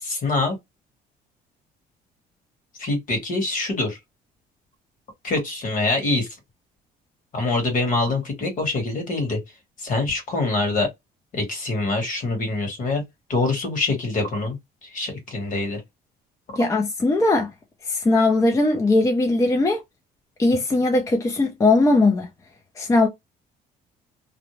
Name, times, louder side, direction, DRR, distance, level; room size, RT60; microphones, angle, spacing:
voice 1, 0.0-0.6 2.8-4.0 5.2-6.3 7.3-9.4 9.8-10.9 11.3-13.0 13.3-14.6 14.8-15.8 16.5-16.6, left 3 dB, 50° left, 1.4 m, -24 dB
voice 2, 16.6-17.5 17.9-19.8 20.4-22.3 22.8-23.1, left 2 dB, 20° left, 0.5 m, -19 dB
2.6 x 2.0 x 3.0 m
cardioid pair, 110°, 17 cm